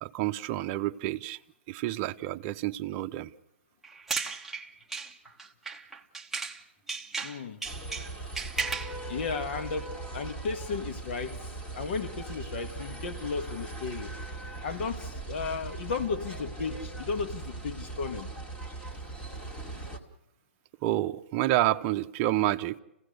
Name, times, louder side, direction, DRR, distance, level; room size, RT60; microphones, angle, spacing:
voice 1, 0.0-1.4 1.7-3.3 20.8-22.8, right 15 dB, 35° right, 0.7 m, -29 dB
sound 1, 3.8-6.6 6.9-9.0, right 4 dB, 5° right, 1.2 m, -35 dB
voice 2, 7.2-7.6 9.1-11.4 11.8-14.1 14.6-18.3, left 5 dB, 60° left, 1.8 m, -34 dB
Old Delhi Street Ambience, 7.6-20.0, right 2 dB, 15° left, 2.1 m, -39 dB
28.0 x 16.5 x 6.6 m
hypercardioid pair, 140°, 7 cm